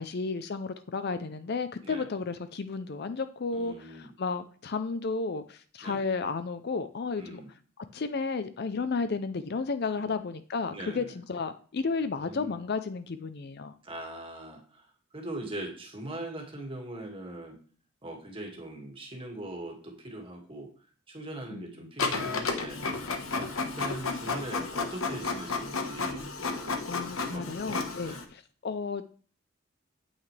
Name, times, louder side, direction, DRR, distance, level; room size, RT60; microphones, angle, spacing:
voice 1, 0.0-7.4 7.8-13.7 21.5-21.6 26.8-29.0, left 4 dB, 50° left, 12 dB, 0.5 m, -33 dB
voice 2, 3.5-4.1 5.8-6.0 7.2-7.5 10.0-10.2 10.7-11.2 12.1-12.6 13.8-17.6 18.0-22.8 23.3-27.8 28.0-28.3, right 1 dB, 25° right, 1 dB, 2.0 m, -41 dB
Printer, 22.0-28.2, left 4 dB, 80° left, 1.2 m, -32 dB
8.8 x 8.1 x 3.3 m, 0.43 s
head